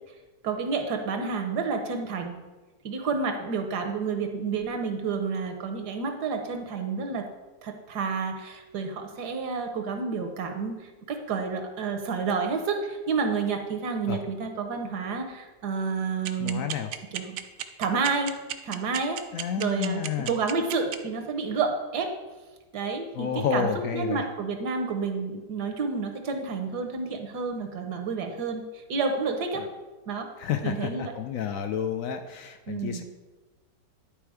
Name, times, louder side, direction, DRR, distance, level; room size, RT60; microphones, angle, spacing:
voice 1, 0.4-2.4 2.8-7.3 7.6-16.7 17.1-17.4 17.8-18.3 18.6-19.2 19.6-22.1 22.7-23.7 23.9-28.6 28.9-29.6 30.1-30.3 30.6-31.1 32.7-33.0, right 4 dB, 70° right, 5 dB, 1.4 m, -30 dB
sound 1, 16.3-21.0, right 11 dB, 85° right, 0.6 m, -32 dB
voice 2, 16.4-16.9 19.3-20.3 23.1-24.2 29.5-29.7 30.4-33.0, left 7 dB, 70° left, 7 dB, 0.8 m, -30 dB
10.5 x 4.5 x 4.8 m, 1.2 s
omnidirectional pair, 1.9 m